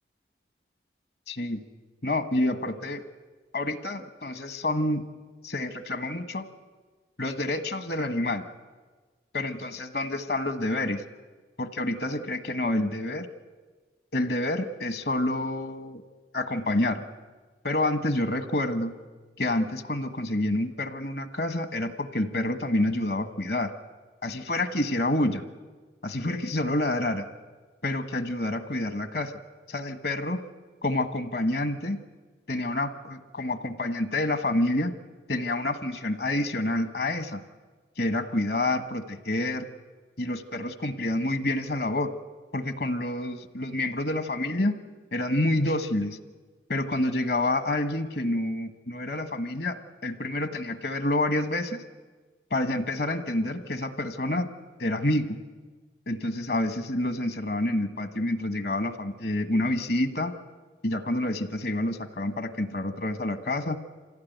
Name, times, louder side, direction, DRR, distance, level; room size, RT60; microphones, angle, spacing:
voice 1, 1.3-1.6 2.0-3.0 3.5-5.0 5.4-6.5 7.2-8.4 9.3-11.0 11.6-13.3 14.1-16.0 16.3-17.0 17.6-18.9 19.4-23.7 24.2-25.4 26.0-27.3 27.8-29.3 29.7-30.4 30.8-32.0 32.5-34.9 35.3-37.4 38.0-39.7 40.2-42.1 42.5-44.8 45.1-46.2 46.7-49.8 50.0-51.8 52.5-54.5 54.8-55.4 56.1-60.3 60.8-63.8, left 1 dB, 60° left, 9 dB, 1.3 m, -28 dB
26.0 x 16.5 x 9.3 m, 1.4 s
head